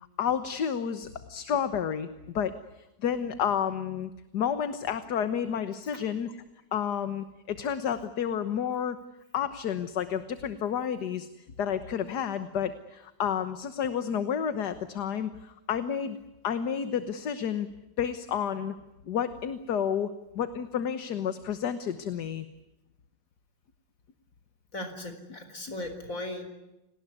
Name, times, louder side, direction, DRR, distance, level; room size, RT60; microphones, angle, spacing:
voice 1, 0.2-2.1 2.4-2.5 3.0-6.4 6.7-9.0 9.3-11.3 11.6-16.2 16.4-17.7 18.0-18.7 19.1-22.5 25.7-25.8, left 8 dB, 65° left, 11 dB, 1.7 m, -30 dB
voice 2, 24.7-26.4, left 1 dB, 45° left, 7 dB, 5.0 m, -37 dB
29.5 x 19.0 x 9.7 m, 0.96 s
omnidirectional pair, 2.0 m